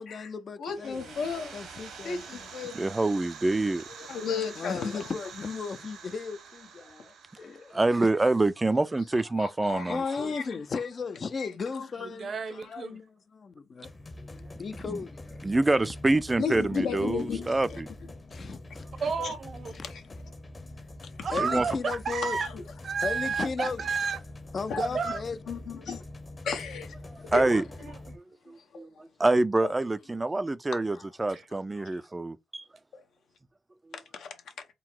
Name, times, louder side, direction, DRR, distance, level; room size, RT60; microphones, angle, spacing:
voice 1, 0.0-1.2 1.5-2.5 4.6-7.9 9.9-13.9 14.6-15.4 18.3-18.9 19.7-19.9 21.3-22.4 23.0-23.8 24.5-25.4, left 5 dB, 50° left, 0.4 m, -36 dB
voice 2, 0.6-1.6 2.0-2.9 4.1-5.0 9.3-10.6 11.4-11.9 12.6-12.7 16.4-17.8 19.2-19.3 19.9-20.0 22.4-22.5 24.7-25.1 25.5-26.0 26.4-26.9 27.2-27.6 28.7-28.8 30.9-31.0 31.8-31.9 32.9-33.0 34.1-34.3, left 6 dB, 80° left, 0.9 m, -34 dB
sound 1, 0.7-9.3, right 6 dB, 85° right, 1.3 m, -47 dB
voice 3, 2.7-3.8 7.7-10.3 14.9-15.0 15.4-17.9 21.4-21.6 27.3-27.6 28.5-28.9 29.2-32.6, right 2 dB, 20° right, 0.3 m, -26 dB
voice 4, 12.0-13.0 19.0-19.8 21.2-22.5 22.8-24.2 24.8-25.2 27.8-28.2 31.3-31.4, right 5 dB, 55° right, 0.7 m, -32 dB
sound 2, 13.8-28.2, left 1 dB, 35° left, 0.8 m, -44 dB
3.8 x 2.0 x 4.4 m
cardioid pair, 70°, 0 cm